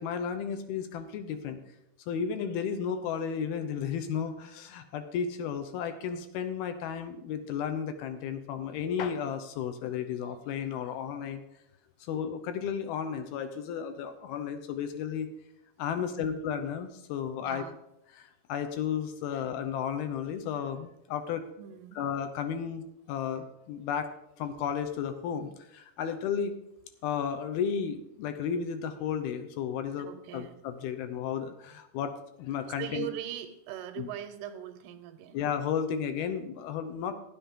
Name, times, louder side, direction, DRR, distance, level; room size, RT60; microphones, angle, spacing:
voice 1, 0.0-1.6 2.1-11.4 12.0-15.3 15.8-17.6 18.2-21.4 22.0-24.1 24.4-26.6 27.0-30.1 30.3-32.1 32.4-33.1 34.0-34.1 35.3-37.1, left 7 dB, 75° left, 8 dB, 2.7 m, -33 dB
voice 2, 16.0-16.4 17.4-17.8 21.6-22.0 30.0-30.6 32.8-35.4, right 11 dB, 90° right, 9 dB, 3.0 m, -41 dB
12.5 x 10.5 x 3.7 m, 0.80 s
omnidirectional pair, 4.6 m